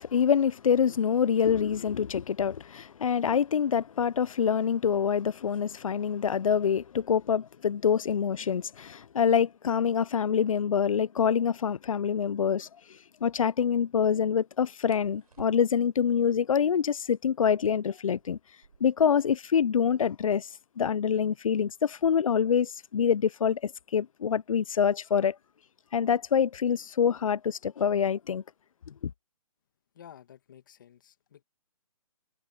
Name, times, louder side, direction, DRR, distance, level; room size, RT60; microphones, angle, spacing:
voice 1, 0.0-12.7 13.2-18.4 18.8-20.5 20.8-25.4 25.9-28.4, left 7 dB, 60° left, 0.5 m, -26 dB
sound 1, 12.2-12.4 14.9-16.0 17.4-19.1 19.4-19.5 19.7-20.3 20.9-23.5 24.5-24.8 25.2-25.6 26.0-26.7, right 5 dB, 85° right, 4.4 m, -57 dB
voice 2, 29.9-31.4, left 9 dB, 35° left, 2.1 m, -52 dB
hypercardioid pair, 170°, 19 cm